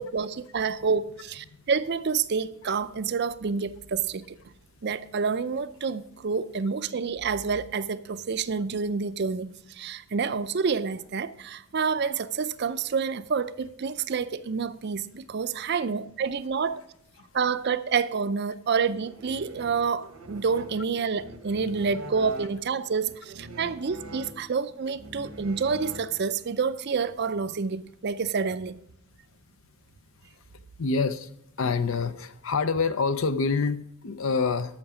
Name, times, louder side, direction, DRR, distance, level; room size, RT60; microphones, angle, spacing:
voice 1, 0.0-4.4 4.8-16.8 17.3-28.8, right 5 dB, 50° right, 13 dB, 0.5 m, -28 dB
sound 1, 19.0-26.5, right 1 dB, 80° right, 1.0 m, -44 dB
voice 2, 30.8-31.3 31.6-34.8, left 4 dB, 65° left, 11 dB, 0.6 m, -26 dB
13.5 x 5.9 x 4.9 m, 0.76 s
head